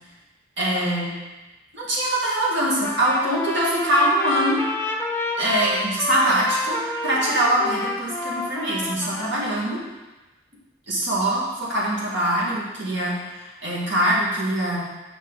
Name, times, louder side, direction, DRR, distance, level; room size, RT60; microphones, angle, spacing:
voice 1, 0.6-1.1 1.7-4.6 5.4-6.8 7.0-9.8 10.9-14.8, right 1 dB, 75° right, -5 dB, 2.0 m, -23 dB
Trumpet, 2.8-9.8, left 2 dB, 10° left, 0.5 m, -29 dB
6.7 x 4.9 x 4.0 m, 1.1 s
head